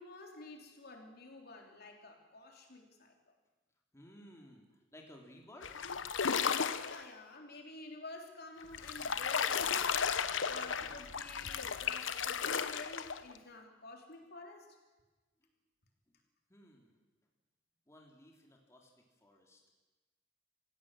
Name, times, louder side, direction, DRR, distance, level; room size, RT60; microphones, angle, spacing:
voice 1, 0.0-3.1 6.8-10.2 10.5-14.7, left 2 dB, 55° left, 2 dB, 3.4 m, -50 dB
voice 2, 3.9-5.9 15.4-15.5 16.1-16.2 16.5-17.0 17.9-19.6, left 1 dB, 15° left, 0 dB, 2.9 m, -58 dB
sound 1, 5.6-7.0 8.6-13.4, left 6 dB, 80° left, 1.0 m, -34 dB
27.0 x 16.0 x 7.5 m, 1.2 s
head